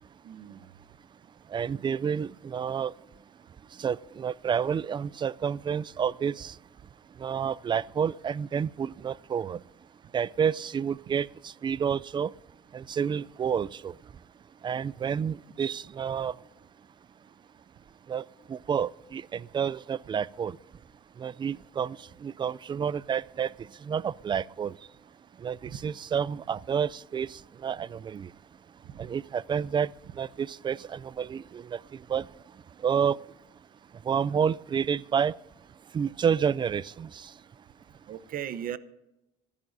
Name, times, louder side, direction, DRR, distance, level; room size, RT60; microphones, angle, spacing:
voice 1, 0.2-0.7 14.8-15.2 25.6-25.8 38.1-38.8, right 10 dB, 55° right, 15 dB, 0.8 m, -38 dB
voice 2, 1.5-2.9 3.7-6.6 7.2-9.6 10.1-12.3 12.7-14.0 14.6-16.4 18.1-20.6 21.2-24.8 25.4-28.3 29.0-32.3 32.8-33.2 34.0-35.3 35.9-37.3, right 7 dB, 30° right, 22 dB, 0.3 m, -30 dB
26.0 x 11.0 x 2.7 m, 0.92 s
cardioid pair, 110°, 17 cm